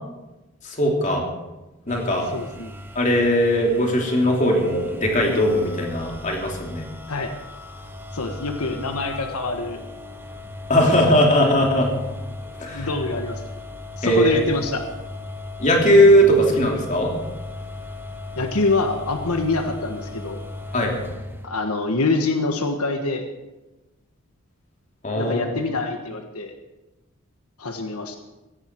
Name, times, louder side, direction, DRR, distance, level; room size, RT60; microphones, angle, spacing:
voice 1, 0.6-1.2 1.9-2.3 2.9-6.8 10.7-11.9 12.6-12.9 14.0-14.4 15.6-17.1 20.7-20.9 25.0-25.6, equal, 35° left, 0 dB, 3.1 m, -19 dB
sound 1, 1.9-21.5, left 2 dB, 10° right, 1.0 m, -36 dB
voice 2, 2.3-2.7 7.1-7.3 8.1-9.8 12.7-13.5 14.0-14.8 18.4-20.4 21.4-23.2 25.1-26.5 27.6-28.2, left 3 dB, 85° left, 5 dB, 1.4 m, -25 dB
16.5 x 16.0 x 4.6 m, 1.0 s
head